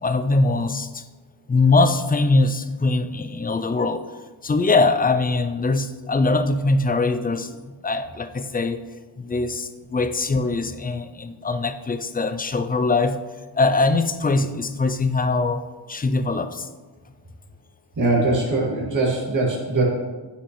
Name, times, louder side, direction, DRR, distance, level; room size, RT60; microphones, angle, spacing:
voice 1, 0.0-1.0 1.5-4.0 4.4-8.8 9.2-13.2 13.5-16.7, left 3 dB, 20° left, 10 dB, 0.3 m, -22 dB
voice 2, 18.0-19.8, right 2 dB, 40° right, -5 dB, 2.3 m, -21 dB
9.9 x 5.7 x 3.1 m, 1.3 s
wide cardioid pair, 120°, 46 cm